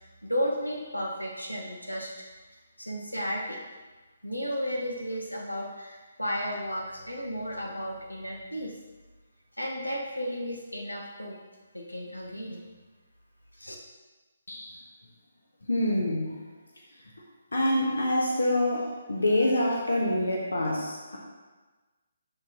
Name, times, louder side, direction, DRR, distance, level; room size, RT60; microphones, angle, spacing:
voice 1, 0.2-2.1 2.5-3.6 4.2-8.7 9.6-11.4 11.7-12.6 13.6-13.8, equal, 90° left, 0 dB, 1.0 m, -33 dB
voice 2, 15.7-16.4 17.5-21.2, left 1 dB, 70° left, -2 dB, 1.2 m, -26 dB
12.0 x 4.0 x 3.0 m, 1.3 s
figure-of-eight pair, 140°, 0 cm